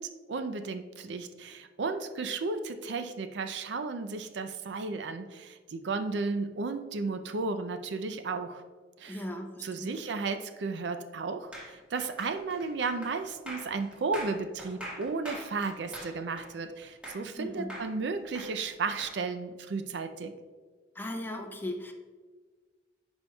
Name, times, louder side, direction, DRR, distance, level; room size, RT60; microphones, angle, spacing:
voice 1, 0.0-8.6 9.0-9.2 9.6-20.3, right 4 dB, 70° right, 8 dB, 0.5 m, -34 dB
voice 2, 9.1-10.0 17.4-17.7 20.9-21.9, left 1 dB, 10° left, 3 dB, 0.6 m, -37 dB
sound 1, 11.5-17.4 17.7-19.2, equal, 5° right, 1.6 m, -43 dB
10.5 x 4.5 x 2.3 m, 1.4 s
head